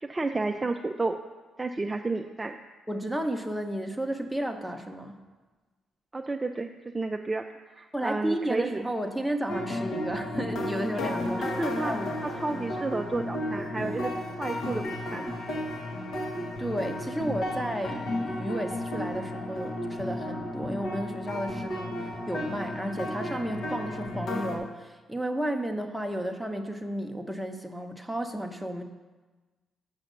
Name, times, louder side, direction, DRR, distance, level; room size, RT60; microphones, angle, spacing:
voice 1, 0.0-1.2 1.6-2.6 6.1-6.7 6.9-8.8 11.4-11.9 12.2-14.1 14.4-15.3, right 3 dB, 20° right, 4 dB, 0.4 m, -31 dB
voice 2, 2.9-5.3 7.9-11.5 11.9-12.1 16.6-28.8, right 1 dB, ahead, 4 dB, 0.9 m, -32 dB
sound 1, 9.5-24.6, left 1 dB, 70° left, 1.4 m, -33 dB
7.4 x 5.7 x 6.5 m, 1.3 s
cardioid pair, 90°, 0 cm